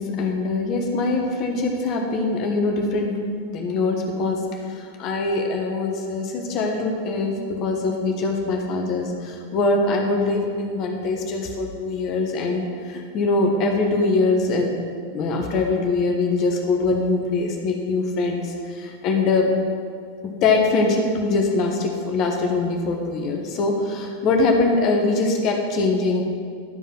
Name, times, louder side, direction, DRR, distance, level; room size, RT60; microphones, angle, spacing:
voice 1, 0.0-3.1 3.5-14.7 15.1-19.5 20.2-26.2, left 3 dB, 40° left, 2 dB, 1.3 m, -23 dB
12.0 x 5.3 x 6.0 m, 2.1 s
figure-of-eight pair, 90°, 0 cm